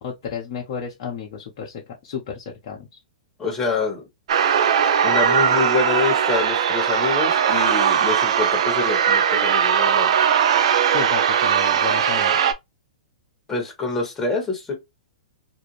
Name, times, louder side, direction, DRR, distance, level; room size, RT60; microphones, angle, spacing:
voice 1, 0.0-3.0 10.9-12.5, left 7 dB, 50° left, 0.7 m, -32 dB
voice 2, 3.4-4.0 5.0-10.1 13.5-14.7, left 4 dB, 15° left, 1.2 m, -26 dB
sound 1, 4.3-12.5, right 8 dB, 65° right, 0.4 m, -19 dB
2.5 x 2.1 x 3.0 m
hypercardioid pair, 120°, 4 cm